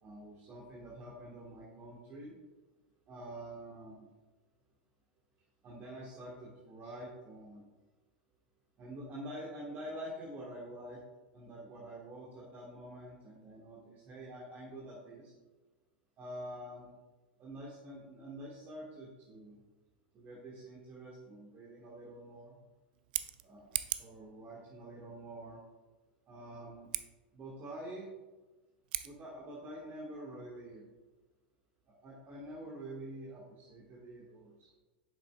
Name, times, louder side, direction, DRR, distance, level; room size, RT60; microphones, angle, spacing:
voice 1, 0.0-2.3 3.1-4.0 5.6-7.6 8.8-11.0 11.3-15.3 16.2-16.9 17.4-19.6 20.1-22.6 23.4-25.6 26.3-26.9 27.3-28.1 29.0-30.8 32.0-34.7, right 1 dB, 35° right, -5 dB, 1.5 m, -47 dB
Scissors, 22.9-24.2 26.8-27.1 28.8-29.1, right 14 dB, 60° right, 0.4 m, -37 dB
7.6 x 5.9 x 2.3 m, 1.2 s
figure-of-eight pair, 95°, 6 cm